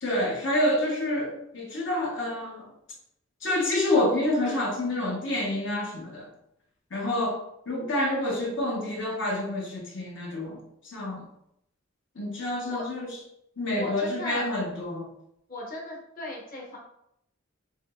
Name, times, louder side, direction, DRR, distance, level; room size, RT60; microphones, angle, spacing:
voice 1, 0.0-2.7 3.4-6.3 6.9-7.4 7.7-11.2 12.2-13.1 13.6-15.1, left 1 dB, 65° left, -3 dB, 1.1 m, -28 dB
voice 2, 13.7-14.5 15.5-16.8, left 1 dB, 45° left, -2 dB, 1.1 m, -37 dB
7.2 x 2.9 x 2.4 m, 0.78 s
head